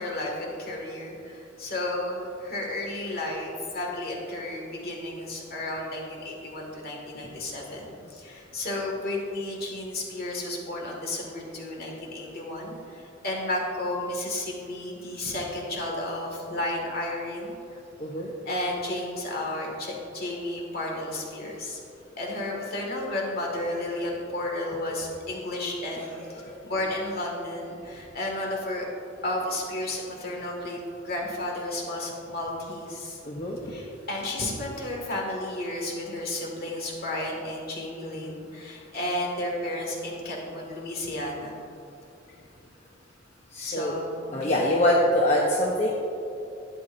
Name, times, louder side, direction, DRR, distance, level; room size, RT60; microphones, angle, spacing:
voice 1, 0.0-17.6 18.5-21.8 22.2-26.2 26.6-28.9 29.2-30.8 31.0-33.2 33.7-41.6 43.6-44.7, left 1 dB, 50° left, -1 dB, 1.9 m, -32 dB
voice 2, 33.2-33.7 43.5-43.9 44.3-45.9, left 1 dB, 35° left, -3 dB, 0.8 m, -24 dB
12.0 x 9.2 x 2.6 m, 2.8 s
head